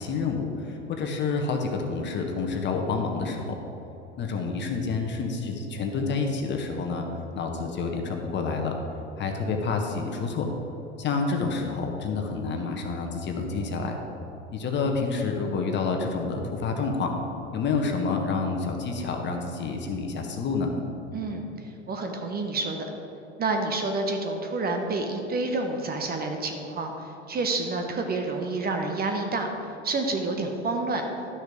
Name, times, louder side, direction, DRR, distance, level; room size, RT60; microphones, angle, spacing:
voice 1, 0.0-3.6 4.2-7.1 7.3-8.7 9.2-10.5 11.0-14.0 14.5-17.1 17.5-20.7, left 4 dB, 30° left, 3 dB, 1.3 m, -28 dB
voice 2, 21.1-21.5 21.9-22.9 23.4-26.9 27.3-29.5 29.8-31.0, right 3 dB, 25° right, 4 dB, 1.0 m, -28 dB
12.0 x 6.4 x 5.0 m, 3.0 s
figure-of-eight pair, 80°, 36 cm